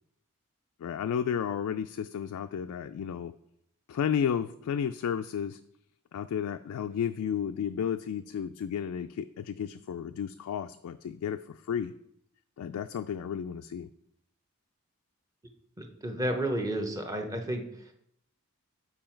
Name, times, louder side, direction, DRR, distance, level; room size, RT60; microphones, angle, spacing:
voice 1, 0.8-3.3 3.9-5.6 6.1-11.9 12.6-13.9, left 8 dB, 85° left, 9 dB, 0.3 m, -32 dB
voice 2, 15.8-17.9, right 1 dB, 15° right, 4 dB, 0.8 m, -32 dB
7.5 x 4.6 x 4.4 m, 0.75 s
head